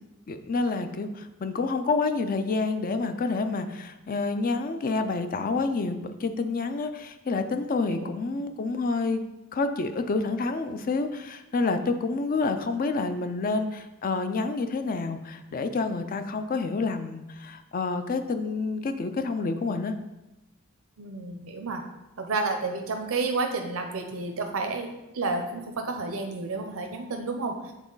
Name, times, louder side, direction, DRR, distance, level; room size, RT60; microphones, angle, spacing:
voice 1, 0.3-9.2 9.5-19.9, left 3 dB, 40° left, 8 dB, 0.4 m, -28 dB
voice 2, 21.0-21.8 22.2-27.7, right 3 dB, 70° right, 4 dB, 0.6 m, -31 dB
7.2 x 3.9 x 3.9 m, 1.0 s
head